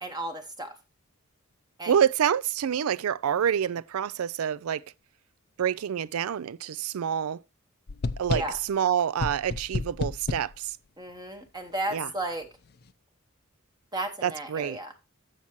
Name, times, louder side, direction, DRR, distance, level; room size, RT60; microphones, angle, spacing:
voice 1, 0.0-0.8 1.8-2.0 8.3-8.6 11.0-12.5 13.9-14.9, right 1 dB, 20° right, 0.9 m, -34 dB
voice 2, 1.9-4.8 5.6-7.4 8.2-8.4 8.7-10.7 11.9-12.1 14.2-14.8, right 8 dB, 80° right, 0.4 m, -27 dB
sound 1, 7.9-8.7 9.2-10.6, left 3 dB, 45° left, 0.5 m, -31 dB
14.5 x 5.7 x 3.0 m
head